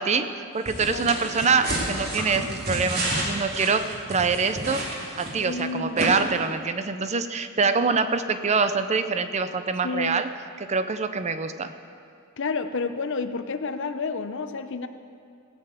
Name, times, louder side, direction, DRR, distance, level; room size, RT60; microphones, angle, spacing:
voice 1, 0.0-4.8 5.2-10.3 10.7-11.7, right 4 dB, 35° right, 10 dB, 0.5 m, -25 dB
sound 1, 0.7-5.6 6.0-6.1, right 1 dB, 50° right, 2.7 m, -30 dB
voice 2, 0.9-1.2 5.4-6.1 9.8-10.2 12.4-14.9, left 4 dB, 60° left, 10 dB, 0.7 m, -30 dB
17.5 x 6.8 x 8.2 m, 2.4 s
head